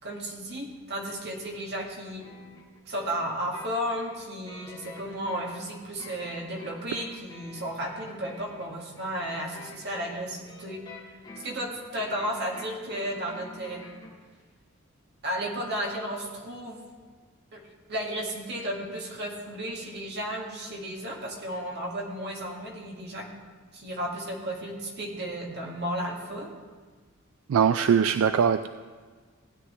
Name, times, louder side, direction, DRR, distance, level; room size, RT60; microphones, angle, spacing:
voice 1, 0.0-2.3 2.9-10.8 11.4-13.8 15.2-16.8 17.5-17.6 17.9-23.3 23.7-26.5, equal, 55° right, -1 dB, 2.0 m, -33 dB
sound 1, 2.2-14.2, left 2 dB, 20° left, 1.8 m, -48 dB
voice 2, 27.5-28.7, right 7 dB, 70° right, 10 dB, 0.3 m, -21 dB
16.0 x 9.6 x 3.2 m, 1.5 s
head